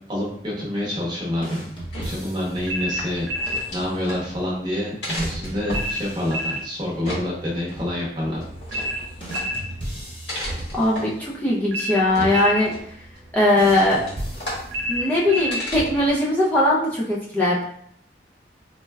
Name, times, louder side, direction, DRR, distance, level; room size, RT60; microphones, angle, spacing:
voice 1, 0.1-1.7 2.0-3.3 3.7-8.4, left 1 dB, 25° right, -4 dB, 0.8 m, -27 dB
sound 1, 1.4-2.8 5.1-7.0 9.2-11.3 13.6-15.2, right 1 dB, 30° left, 0.8 m, -35 dB
sound 2, 1.7-16.2, equal, 85° left, 1.2 m, -36 dB
sound 3, 2.7-3.7 5.7-6.7 8.7-9.7 11.7-12.7 14.7-15.7, left 1 dB, 70° right, 0.5 m, -28 dB
voice 2, 10.7-12.7 13.3-14.0 14.9-17.6, left 1 dB, 10° left, -6 dB, 0.4 m, -20 dB
4.1 x 2.1 x 2.2 m, 0.67 s
head